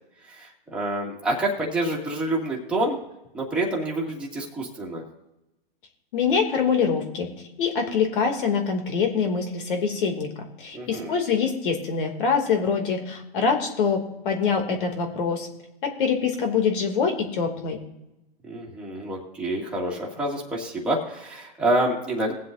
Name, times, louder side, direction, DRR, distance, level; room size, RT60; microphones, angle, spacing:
voice 1, 0.3-3.0 3.3-5.0 10.7-11.1 18.4-22.4, right 1 dB, 5° right, -4 dB, 2.3 m, -27 dB
voice 2, 6.1-7.3 7.6-10.3 10.6-15.5 15.8-17.8, left 6 dB, 60° left, 4 dB, 2.7 m, -24 dB
20.5 x 7.7 x 2.7 m, 0.94 s
hypercardioid pair, 140°, 30 cm